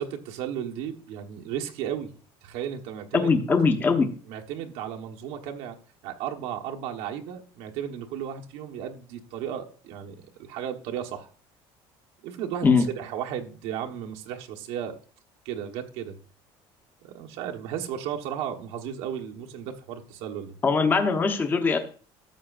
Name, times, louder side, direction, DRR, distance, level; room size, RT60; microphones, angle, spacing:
voice 1, 0.0-2.1 2.4-3.3 4.3-5.8 6.0-11.3 12.2-15.0 15.4-16.2 17.0-20.6, right 9 dB, 85° right, 3 dB, 1.3 m, -34 dB
voice 2, 3.1-4.1 12.6-12.8 20.6-21.8, left 4 dB, 20° left, 5 dB, 0.9 m, -21 dB
13.5 x 8.0 x 2.5 m, 0.40 s
cardioid pair, 165°, 11 cm